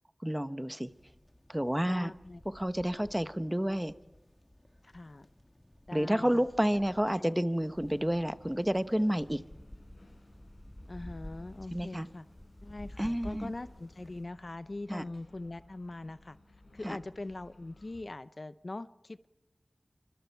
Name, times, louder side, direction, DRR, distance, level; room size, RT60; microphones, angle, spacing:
voice 1, 0.2-0.9 1.5-2.1 2.6-3.9 5.9-9.4 11.7-12.1 13.0-13.5 14.9-15.0 16.8-17.0, equal, 10° right, 12 dB, 0.9 m, -30 dB
sound 1, 0.9-14.2, left 1 dB, 15° left, 1.9 m, -52 dB
voice 2, 1.8-2.4 4.8-5.3 5.9-6.5 7.1-7.3 10.9-12.3 12.6-16.4 16.7-19.3, left 2 dB, 50° left, 14 dB, 0.7 m, -42 dB
sound 2, 7.8-18.0, left 1 dB, 75° left, 6.1 m, -59 dB
27.0 x 25.0 x 4.6 m, 0.95 s
wide cardioid pair, 50°, 0 cm